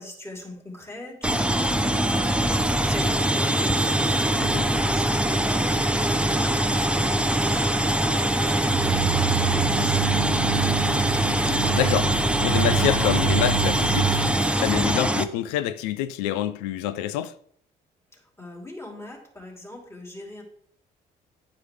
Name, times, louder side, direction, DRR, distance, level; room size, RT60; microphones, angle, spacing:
voice 1, 0.0-10.8 18.1-20.4, left 1 dB, 10° left, 2.8 m, -41 dB
sound 1, 1.2-15.2, right 1 dB, 5° right, 0.6 m, -23 dB
sound 2, 8.7-14.4, right 14 dB, 75° right, 0.5 m, -28 dB
voice 2, 11.5-14.2 14.6-17.3, left 12 dB, 80° left, 0.4 m, -27 dB
10.0 x 4.7 x 3.4 m
hypercardioid pair, 50°, 21 cm